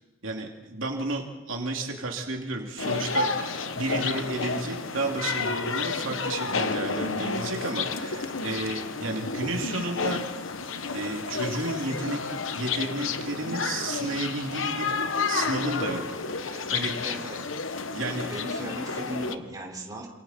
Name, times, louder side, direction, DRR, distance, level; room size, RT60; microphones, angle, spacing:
voice 1, 0.2-10.2 10.9-14.9 15.2-16.9 17.9-18.3, right 2 dB, 80° right, 1 dB, 2.9 m, -32 dB
sound 1, 2.8-19.4, left 4 dB, 75° left, 1.2 m, -31 dB
voice 2, 17.0-17.4 18.3-20.1, right 1 dB, 20° right, -2 dB, 5.1 m, -37 dB
29.0 x 26.5 x 4.4 m, 1.1 s
head